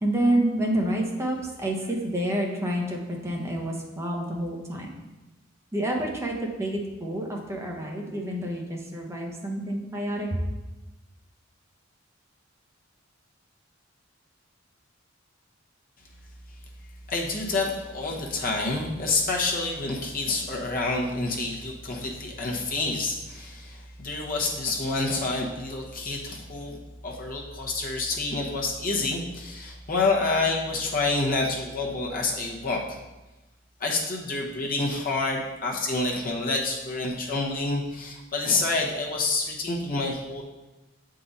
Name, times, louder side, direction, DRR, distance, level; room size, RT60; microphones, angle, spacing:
voice 1, 0.0-4.9 5.7-10.4, right 1 dB, 15° right, -1 dB, 0.9 m, -28 dB
voice 2, 17.1-33.0 33.8-40.4, left 3 dB, 45° left, -2 dB, 1.0 m, -28 dB
7.5 x 3.8 x 4.1 m, 1.1 s
head